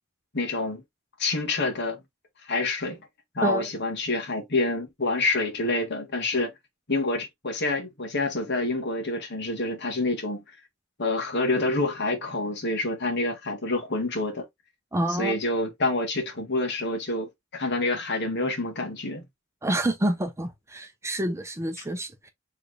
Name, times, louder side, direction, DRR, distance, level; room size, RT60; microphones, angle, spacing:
voice 1, 0.3-0.8 1.2-2.0 2.4-3.0 3.3-6.5 6.9-10.4 11.0-14.4 15.1-19.2 21.8-21.9, left 2 dB, 55° left, 1.6 m, -27 dB
voice 2, 14.9-15.4 19.6-22.3, right 1 dB, 15° right, 0.7 m, -27 dB
4.2 x 3.5 x 3.2 m
head